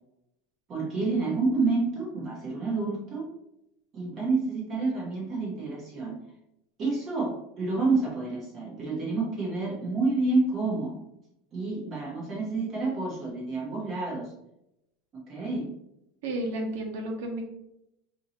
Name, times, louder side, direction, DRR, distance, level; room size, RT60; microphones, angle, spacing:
voice 1, 0.7-3.2 3.9-6.2 6.8-11.0 11.5-14.3 15.3-15.7, right 3 dB, 30° right, -4 dB, 1.0 m, -29 dB
voice 2, 16.2-17.4, right 1 dB, 75° right, 1 dB, 1.0 m, -32 dB
4.5 x 2.8 x 2.8 m, 0.83 s
supercardioid pair, 165°, 0 cm